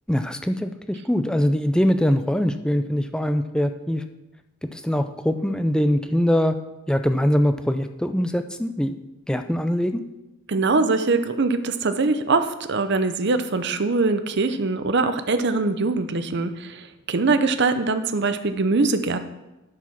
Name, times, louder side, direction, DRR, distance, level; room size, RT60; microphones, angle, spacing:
voice 1, 0.1-4.0 4.6-6.6 6.9-8.9 9.3-10.0, equal, 5° left, 8 dB, 0.4 m, -22 dB
voice 2, 10.5-19.3, right 3 dB, 55° right, 10 dB, 0.7 m, -22 dB
11.0 x 4.9 x 5.8 m, 1.0 s
head